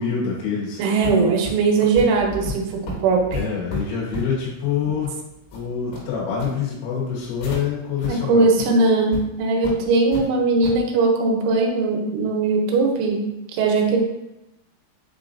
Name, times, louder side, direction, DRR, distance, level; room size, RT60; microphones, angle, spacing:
voice 1, 0.0-0.8 3.3-5.2 5.5-8.5, left 6 dB, 90° left, -4 dB, 3.8 m, -26 dB
voice 2, 0.8-3.4 8.1-13.2 13.5-14.0, right 3 dB, 80° right, 1 dB, 3.0 m, -19 dB
sound 1, 1.0-7.6 8.0-8.1 8.5-8.6 9.1-9.2 9.6-10.3 10.6-10.8, left 2 dB, 75° left, 3.8 m, -33 dB
7.7 x 2.6 x 2.5 m, 0.94 s
omnidirectional pair, 5.6 m